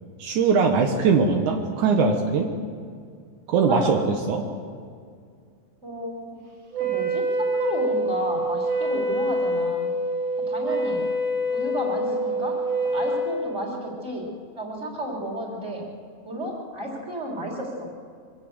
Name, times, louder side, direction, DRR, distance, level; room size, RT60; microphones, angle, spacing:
voice 1, 0.2-2.5 3.5-4.0 4.3-4.4, right 5 dB, 80° right, 3 dB, 1.7 m, -21 dB
voice 2, 5.8-6.4 6.8-9.9 10.5-11.0 11.5-12.5 12.8-14.3 14.5-15.8 16.2-17.9, equal, 15° right, -2 dB, 3.3 m, -32 dB
Wind instrument woodwind instrument, 6.7-13.4, right 1 dB, 55° right, 3.9 m, -26 dB
24.0 x 16.5 x 8.0 m, 2.2 s
omnidirectional pair, 5.4 m